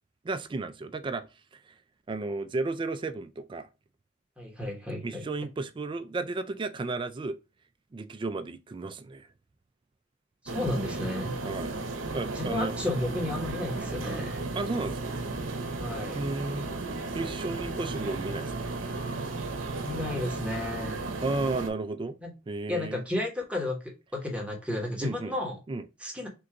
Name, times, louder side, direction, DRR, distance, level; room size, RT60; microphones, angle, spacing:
voice 1, 0.2-1.3 1.7-1.8 2.1-3.7 5.0-7.3 7.9-9.3 11.4-11.8 12.1-12.8 14.5-15.1 16.1-16.7 17.1-18.5 21.2-22.2 22.5-23.0 25.0-25.3 25.7-25.9, right 3 dB, 25° right, 0.3 m, -33 dB
voice 2, 4.4-5.2 10.4-11.4 12.3-14.4 15.8-16.2 19.8-21.0 22.2-22.3 22.7-23.8 24.1-25.6 26.0-26.3, left 1 dB, 5° right, 1.1 m, -32 dB
sound 1, 10.5-21.7, right 3 dB, 80° right, 0.8 m, -34 dB
3.7 x 2.6 x 4.4 m
head